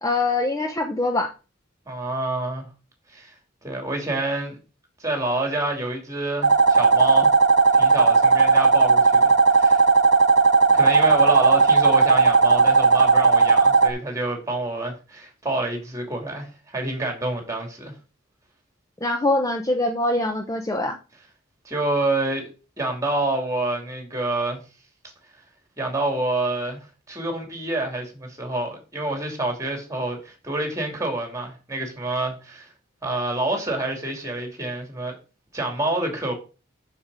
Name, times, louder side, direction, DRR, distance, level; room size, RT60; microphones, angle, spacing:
voice 1, 0.0-1.3 19.0-21.0, left 2 dB, 15° left, 0.7 m, -23 dB
voice 2, 1.9-2.7 3.1-3.3 3.6-4.6 5.0-7.3 7.8-9.8 10.7-17.9 21.6-22.5 22.8-24.6 25.8-32.7 33.0-35.2 35.5-36.3, right 2 dB, 15° right, 2.8 m, -27 dB
sound 1, 6.4-13.9, right 4 dB, 55° right, 0.8 m, -16 dB
6.9 x 6.6 x 4.9 m
head